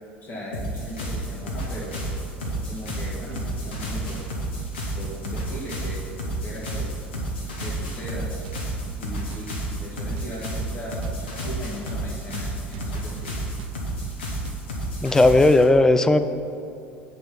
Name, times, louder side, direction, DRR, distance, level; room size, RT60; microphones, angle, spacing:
voice 1, 0.2-2.0 2.5-4.3 4.9-6.1 6.4-6.9 7.6-8.2 9.0-9.5 9.8-13.4, equal, 25° left, -6 dB, 2.2 m, -37 dB
sound 1, 0.5-15.6, right 1 dB, 65° left, 1.5 m, -31 dB
sound 2, 1.2-1.8 2.0-2.2 2.4-3.5 3.7-3.9 4.2-5.2 5.4-5.6 5.9-6.9 7.2-7.3 7.6-9.0 9.3-12.0 12.3-12.5 12.7-14.8, right 12 dB, 60° right, 0.4 m, -39 dB
voice 2, 15.0-16.3, left 2 dB, 10° left, 11 dB, 0.4 m, -16 dB
8.8 x 4.9 x 5.6 m, 2.5 s
figure-of-eight pair, 70°, 6 cm